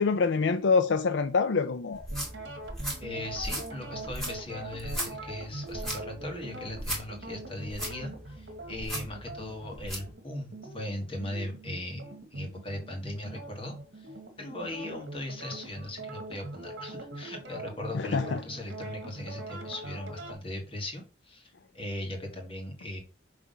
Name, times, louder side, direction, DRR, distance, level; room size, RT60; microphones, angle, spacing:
voice 1, 0.0-2.1 17.9-18.4, left 4 dB, 70° left, 0.5 m, -25 dB
sound 1, 1.9-10.1, right 1 dB, ahead, 2.0 m, -38 dB
sound 2, 2.1-20.3, right 2 dB, 70° right, 1.3 m, -42 dB
voice 2, 3.0-12.0 12.3-14.1 14.4-23.0, left 1 dB, 30° left, 1.7 m, -39 dB
6.0 x 3.4 x 5.2 m
head